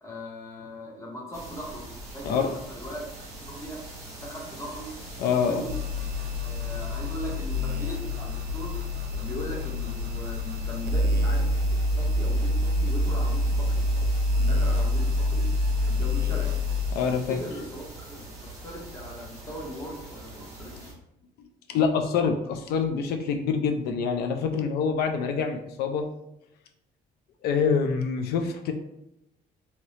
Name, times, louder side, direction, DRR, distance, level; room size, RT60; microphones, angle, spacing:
voice 1, 0.0-3.1 3.4-3.8 4.2-4.9 5.2-5.7 6.4-8.8 9.1-11.5 11.9-15.5 15.8-16.5 17.0-20.9, equal, 15° left, -2 dB, 1.0 m, -39 dB
sound 1, 1.3-20.9, right 2 dB, 20° right, 1.1 m, -43 dB
voice 2, 5.2-5.6 16.9-17.4 21.7-26.1 27.4-28.7, left 6 dB, 70° left, 5 dB, 0.4 m, -26 dB
sound 2, 5.7-16.9, left 1 dB, 80° right, 0.5 m, -26 dB
2.9 x 2.8 x 3.1 m, 0.85 s
cardioid pair, 110°, 17 cm